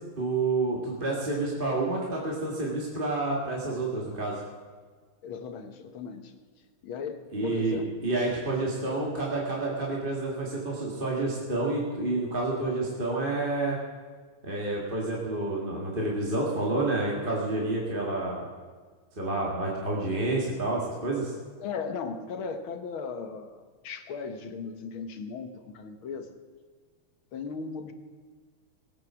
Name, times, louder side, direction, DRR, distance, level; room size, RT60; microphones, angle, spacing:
voice 1, 0.2-4.4 7.3-13.8 14.4-18.5 19.2-21.3, right 2 dB, 25° right, -3 dB, 2.1 m, -29 dB
voice 2, 5.2-6.3 6.8-7.9 8.9-9.1 21.6-26.3 27.3-27.9, left 5 dB, 70° left, 7 dB, 2.0 m, -37 dB
20.0 x 9.0 x 6.2 m, 1.5 s
omnidirectional pair, 2.4 m